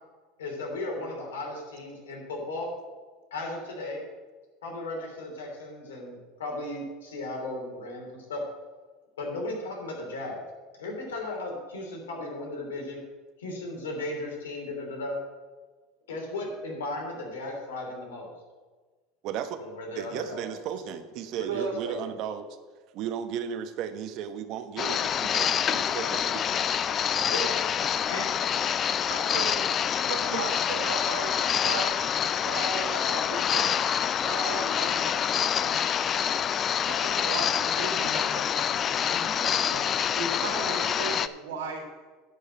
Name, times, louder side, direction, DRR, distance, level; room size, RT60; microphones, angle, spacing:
voice 1, 0.4-2.7 3.3-4.0 4.6-8.4 9.2-10.4 10.8-13.0 13.4-15.2 16.1-18.3 19.6-20.5 21.4-21.9 27.3-27.5 28.1-28.3, left 2 dB, 90° left, 0 dB, 3.0 m, -36 dB
voice 2, 19.2-19.6 19.9-22.5 22.9-26.4, right 8 dB, 55° right, 9 dB, 1.1 m, -35 dB
voice 3, 21.4-21.7 29.1-29.6 30.1-31.3 31.6-31.9 32.4-33.7 34.2-35.4 35.7-35.8 36.8-39.9 40.2-41.8, right 4 dB, 85° right, 1 dB, 3.2 m, -36 dB
sound 1, 24.8-41.3, left 8 dB, 40° left, 0.4 m, -27 dB
10.5 x 5.4 x 7.6 m, 1.4 s
hypercardioid pair, 95°, 0 cm